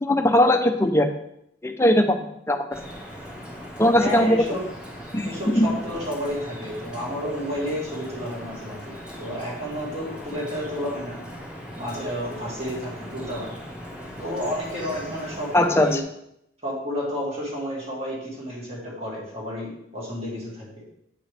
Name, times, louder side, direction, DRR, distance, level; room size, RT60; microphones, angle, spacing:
voice 1, 0.0-1.1 1.6-2.2 2.5-2.8 3.8-4.4 5.1-5.7 15.5-16.0, left 1 dB, 15° left, 5 dB, 0.5 m, -19 dB
Drip, 2.7-16.0, equal, 5° right, 1.5 m, -39 dB
voice 2, 4.0-4.7 5.2-11.2 11.7-13.5 14.2-16.0 16.6-20.9, equal, 35° right, -4 dB, 2.4 m, -31 dB
8.7 x 5.3 x 3.4 m, 0.77 s
head